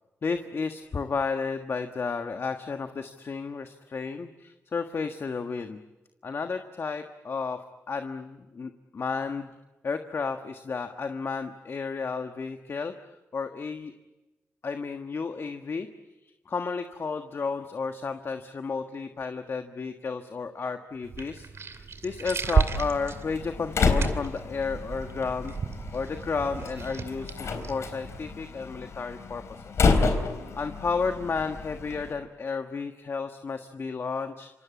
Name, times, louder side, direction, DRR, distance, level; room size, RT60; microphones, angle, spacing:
voice 1, 0.2-5.8 6.2-7.6 7.9-9.5 9.8-12.9 13.3-13.9 14.6-15.9 16.5-25.6 25.9-29.9 30.6-34.5, left 5 dB, 55° left, 6 dB, 1.5 m, -32 dB
sound 1, 21.0-28.3, right 5 dB, 60° right, 2.5 m, -33 dB
Slam, 22.7-32.1, left 4 dB, 70° left, 4.0 m, -30 dB
27.5 x 24.5 x 8.6 m, 1.1 s
cardioid pair, 65°, 5 cm